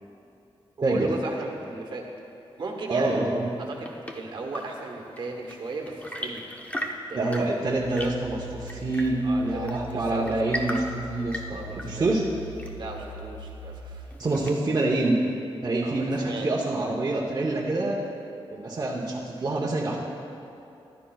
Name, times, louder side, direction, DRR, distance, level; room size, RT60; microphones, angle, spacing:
voice 1, 0.9-2.0 2.6-3.2 3.6-6.5 6.8-7.4 9.2-10.7 11.5-12.1 12.8-14.1 15.8-16.5, right 3 dB, 55° right, 1 dB, 1.2 m, -36 dB
voice 2, 2.9-3.5 7.1-12.3 14.2-15.3 15.6-18.0 18.5-20.0, right 2 dB, 40° right, -4 dB, 0.8 m, -26 dB
Chirp tweet / Engine / Tap, 3.4-14.9, equal, 15° left, 0.7 m, -39 dB
sound 1, 7.6-14.1, equal, 65° left, 2.5 m, -41 dB
14.5 x 11.0 x 2.3 m, 2.8 s
wide cardioid pair, 125°, 10 cm